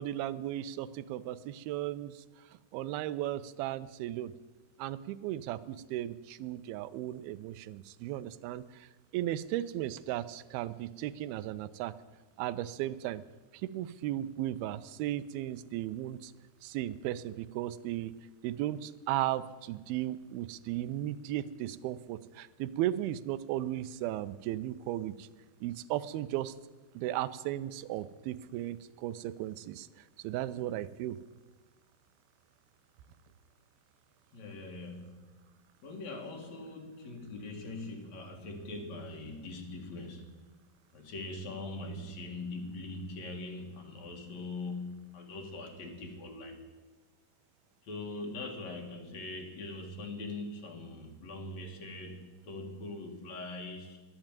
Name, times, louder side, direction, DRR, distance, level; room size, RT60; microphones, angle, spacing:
voice 1, 0.0-2.2 2.7-4.3 4.8-8.9 9.1-11.9 12.4-13.2 13.6-16.3 16.6-18.1 18.4-25.3 25.6-26.5 27.0-29.9 30.2-31.2, right 13 dB, 85° right, 12 dB, 2.5 m, -36 dB
voice 2, 34.3-35.3 35.8-40.3 40.9-46.6 47.8-54.0, left 2 dB, 50° left, 2 dB, 2.8 m, -42 dB
12.0 x 10.5 x 8.9 m, 1.3 s
omnidirectional pair, 4.3 m